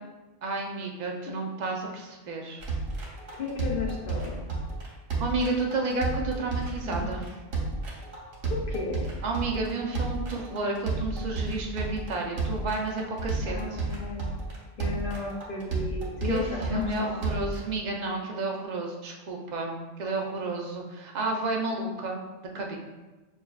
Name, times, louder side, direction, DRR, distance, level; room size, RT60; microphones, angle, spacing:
voice 1, 0.4-2.6 5.2-7.2 9.2-13.8 16.2-22.2 22.5-22.8, right 3 dB, 60° right, 0 dB, 0.4 m, -31 dB
sound 1, 2.6-17.6, right 3 dB, 85° right, 1.3 m, -32 dB
voice 2, 3.3-4.5 6.8-7.0 8.5-9.0 13.5-14.3 14.8-17.1, left 4 dB, 55° left, -2 dB, 0.6 m, -33 dB
6.1 x 2.3 x 2.3 m, 1.2 s
omnidirectional pair, 1.3 m